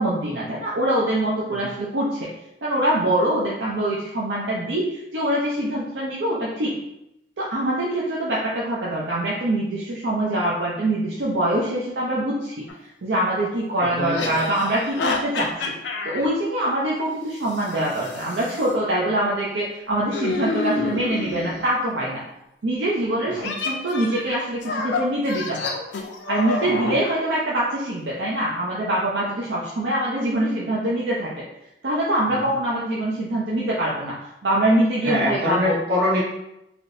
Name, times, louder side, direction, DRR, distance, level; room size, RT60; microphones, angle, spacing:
voice 1, 0.0-2.3 2.6-6.8 7.4-12.6 13.0-15.7 16.0-22.2 22.6-25.7 26.3-31.4 31.8-34.1 34.4-35.8, right 1 dB, 85° right, -5 dB, 0.6 m, -24 dB
sound 1, 12.7-12.8 14.0-16.3 17.5-18.7 20.1-21.6 23.4-27.0, left 3 dB, 85° left, 0.5 m, -29 dB
voice 2, 13.8-14.3 20.7-21.0 23.2-23.4 26.6-27.0 32.3-32.5 35.0-36.2, left 1 dB, 65° right, -7 dB, 1.3 m, -26 dB
3.4 x 2.7 x 2.6 m, 0.87 s
head